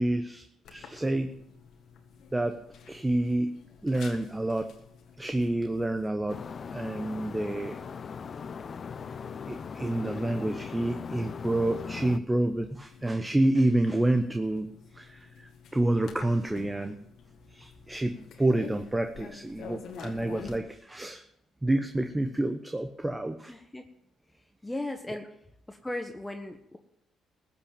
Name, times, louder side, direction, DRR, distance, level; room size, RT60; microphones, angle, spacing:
voice 1, 0.0-1.3 2.3-2.6 2.9-4.7 5.2-7.8 9.5-14.7 14.9-17.0 17.5-21.2 21.6-23.5, right 1 dB, 15° right, 7 dB, 1.0 m, -28 dB
sound 1, 0.6-20.6, left 6 dB, 70° left, 1.8 m, -50 dB
sound 2, 6.3-12.2, left 6 dB, 50° left, 0.6 m, -39 dB
voice 2, 23.5-23.8 24.3-25.3 25.7-26.8, left 1 dB, 15° left, 5 dB, 1.3 m, -37 dB
15.0 x 5.9 x 8.8 m, 0.78 s
supercardioid pair, 60°, 0 cm